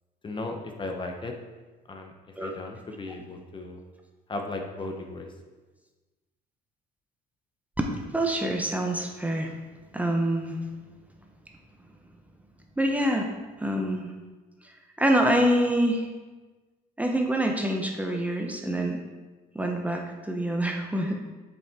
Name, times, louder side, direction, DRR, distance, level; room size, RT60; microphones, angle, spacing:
voice 1, 0.2-1.3 1.9-2.1 2.4-3.8 4.3-5.3, left 2 dB, 30° left, 3 dB, 0.9 m, -35 dB
voice 2, 8.1-9.5 9.9-10.6 12.8-13.3 13.6-14.1 15.0-16.1 17.0-19.0 19.5-21.2, right 1 dB, 10° right, 2 dB, 0.7 m, -26 dB
7.4 x 5.6 x 3.6 m, 1.3 s
cardioid pair, 110°, 17 cm